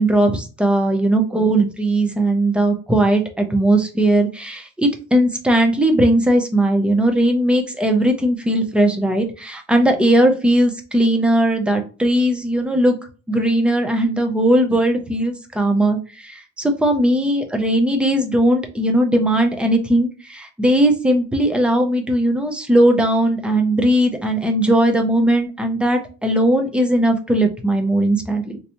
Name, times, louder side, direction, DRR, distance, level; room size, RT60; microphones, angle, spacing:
voice 1, 0.0-12.9 13.3-28.6, right 1 dB, 5° right, 5 dB, 0.3 m, -18 dB
3.2 x 2.7 x 2.8 m, 0.35 s
cardioid pair, 170°, 29 cm